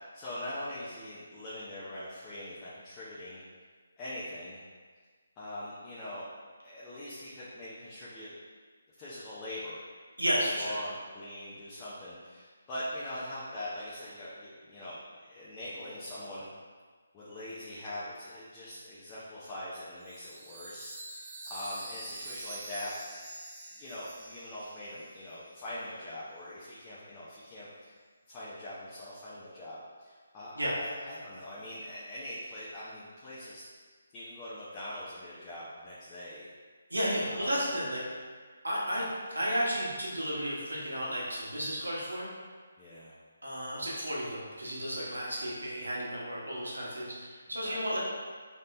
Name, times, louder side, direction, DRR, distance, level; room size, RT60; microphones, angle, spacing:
voice 1, 0.0-3.4 4.0-4.6 5.4-6.2 6.6-8.3 9.0-9.8 10.2-16.5 17.1-23.2 23.8-27.9 28.3-33.6 34.1-36.5 37.2-37.7 42.8-43.1 47.6-47.9, left 1 dB, 20° left, -10 dB, 0.7 m, -42 dB
voice 2, 10.2-10.8 30.6-30.7 36.9-38.0 38.6-39.1 39.3-42.3 43.4-48.0, equal, 85° right, -5 dB, 1.2 m, -33 dB
Chime, 20.0-25.6, right 2 dB, 30° right, 0.6 m, -45 dB
4.0 x 3.6 x 2.6 m, 1.5 s
figure-of-eight pair, 150°, 0 cm